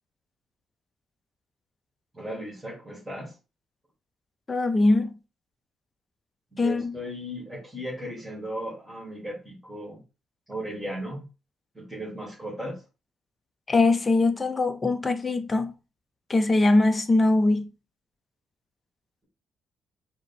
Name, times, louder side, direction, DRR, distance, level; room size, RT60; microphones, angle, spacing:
voice 1, 2.1-3.3 6.5-10.0 10.5-11.3 11.7-12.8, equal, 15° right, 2.1 m, -36 dB
voice 2, 4.5-5.1 6.6-6.9 13.7-15.7 16.3-17.7, left 2 dB, 25° left, 0.7 m, -22 dB
5.0 x 2.2 x 4.1 m
cardioid pair, 90°, 0 cm